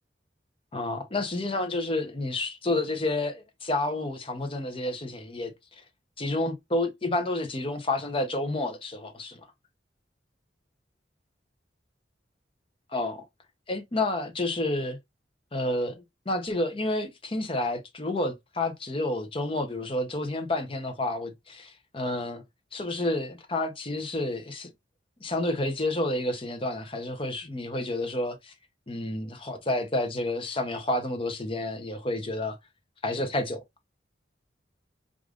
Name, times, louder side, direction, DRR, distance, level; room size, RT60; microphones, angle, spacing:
voice 1, 0.7-5.5 6.2-9.4 12.9-13.3 13.7-15.0 15.5-22.4 22.7-24.7 25.2-28.5 28.9-32.6 33.0-33.6, left 2 dB, 30° left, 0.8 m, -30 dB
4.9 x 2.5 x 2.4 m
head